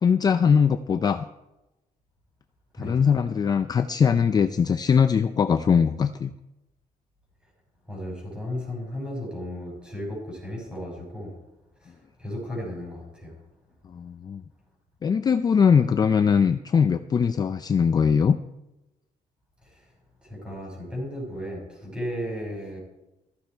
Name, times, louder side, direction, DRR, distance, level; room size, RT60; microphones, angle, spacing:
voice 1, 0.0-1.3 2.8-6.3 13.9-14.4 15.0-18.4, left 6 dB, 30° left, 10 dB, 0.4 m, -21 dB
voice 2, 7.9-11.3 12.2-13.3 20.2-22.8, equal, 5° right, -1 dB, 5.7 m, -34 dB
14.5 x 14.0 x 4.5 m, 0.96 s
cardioid pair, 175°, 14 cm